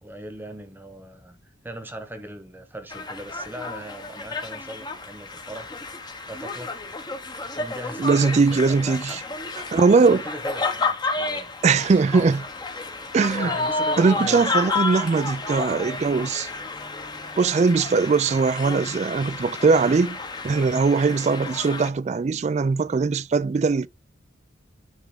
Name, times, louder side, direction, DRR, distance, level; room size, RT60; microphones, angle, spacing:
voice 1, 0.0-1.4 1.6-5.7 6.2-6.8 7.6-9.2 10.1-11.5 13.4-14.5, right 1 dB, 10° right, 1.0 m, -39 dB
sound 1, 2.9-21.9, left 3 dB, 20° left, 0.9 m, -31 dB
voice 2, 8.0-9.2 9.7-10.2 11.6-12.5 13.1-13.6 14.0-16.5 17.4-20.2 20.4-23.9, right 4 dB, 35° right, 0.3 m, -20 dB
10.5 x 3.5 x 3.7 m
head